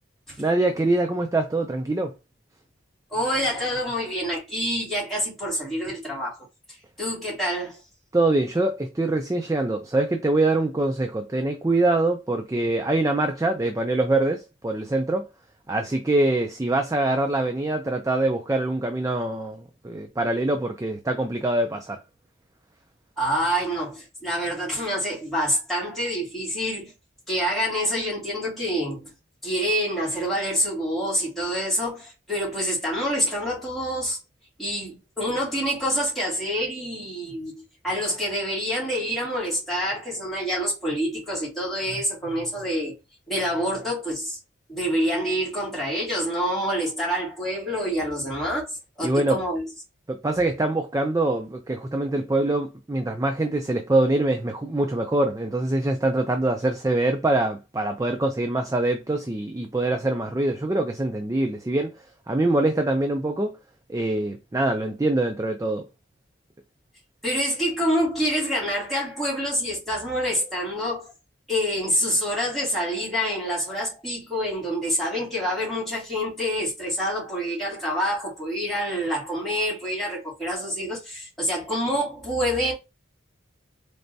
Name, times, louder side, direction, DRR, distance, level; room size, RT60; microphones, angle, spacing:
voice 1, 0.4-2.1 8.1-15.3 15.7-22.0 49.0-49.4 50.1-61.9 62.3-63.6 63.9-65.9, right 2 dB, 15° right, 0.3 m, -24 dB
voice 2, 3.1-6.4 7.0-7.8 23.2-26.9 27.3-29.1 29.4-34.2 34.6-42.9 43.3-44.4 44.7-49.7 67.2-71.1 71.5-82.7, equal, ahead, 2.4 m, -27 dB
4.0 x 3.3 x 2.6 m
head